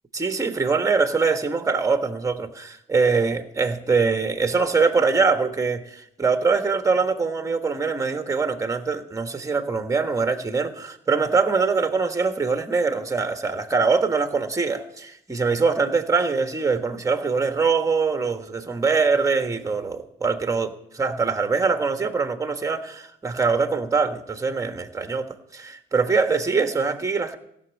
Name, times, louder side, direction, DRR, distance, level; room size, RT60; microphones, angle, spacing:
voice 1, 0.1-27.4, right 4 dB, 15° right, 7 dB, 1.4 m, -23 dB
15.5 x 6.4 x 8.3 m, 0.75 s
cardioid pair, 90°, 20 cm